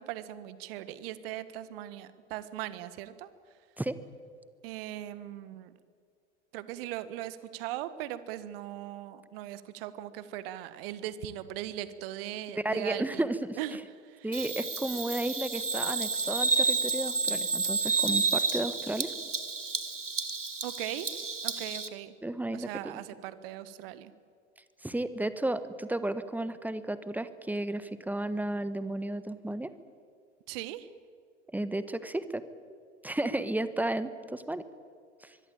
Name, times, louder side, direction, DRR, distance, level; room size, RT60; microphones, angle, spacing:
voice 1, 0.0-3.3 4.6-5.7 6.5-13.3 13.6-14.3 20.6-21.1 21.4-22.1 22.5-24.1 30.5-30.9, right 12 dB, 50° right, 14 dB, 1.7 m, -39 dB
voice 2, 12.6-13.6 14.2-19.1 22.2-22.7 24.8-29.7 31.5-32.4 33.0-34.6 35.2-35.4, right 1 dB, 5° right, 13 dB, 1.4 m, -33 dB
Bird vocalization bird call bird song, 14.3-21.9, right 4 dB, 90° right, 1.6 m, -30 dB
24.5 x 22.5 x 8.9 m, 2.2 s
figure-of-eight pair, 80°, 35 cm